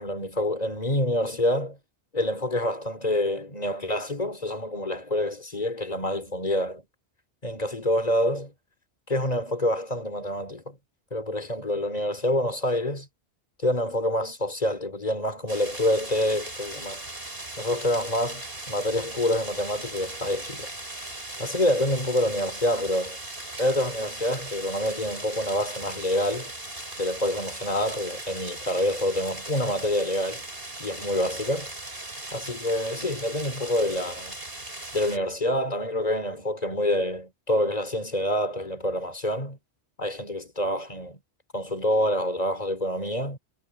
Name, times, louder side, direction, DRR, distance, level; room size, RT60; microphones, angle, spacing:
voice 1, 0.0-1.8 2.1-6.8 7.4-8.5 9.1-10.8 11.1-13.1 13.6-17.0 17.6-20.7 21.4-23.2 23.6-26.5 27.0-30.4 30.8-31.7 32.3-34.4 34.9-39.6 40.0-41.2 41.5-43.4, left 1 dB, 40° left, 3.1 m, -27 dB
sound 1, 15.5-35.2, right 2 dB, 60° right, 4.8 m, -38 dB
omnidirectional pair, 1.1 m